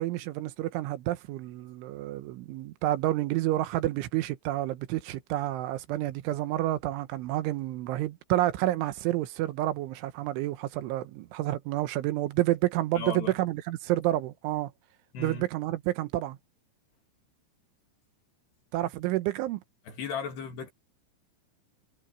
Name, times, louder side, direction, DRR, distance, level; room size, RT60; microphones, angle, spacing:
voice 1, 0.0-14.7 15.2-16.4 18.7-19.6, right 15 dB, 80° right, 3.3 m, -29 dB
voice 2, 12.9-13.3 15.1-15.4 19.9-20.7, left 5 dB, 55° left, 4.4 m, -35 dB
omnidirectional pair, 5.9 m